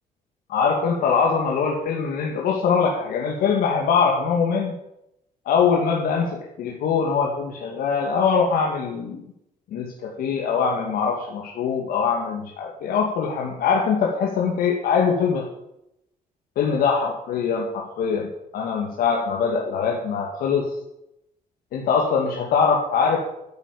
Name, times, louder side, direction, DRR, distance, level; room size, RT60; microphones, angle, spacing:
voice 1, 0.5-4.7 5.5-9.2 9.7-15.5 16.6-20.7 21.7-23.2, left 6 dB, 90° left, -1 dB, 2.3 m, -22 dB
11.0 x 9.5 x 8.4 m, 0.83 s
cardioid pair, 130°, 15 cm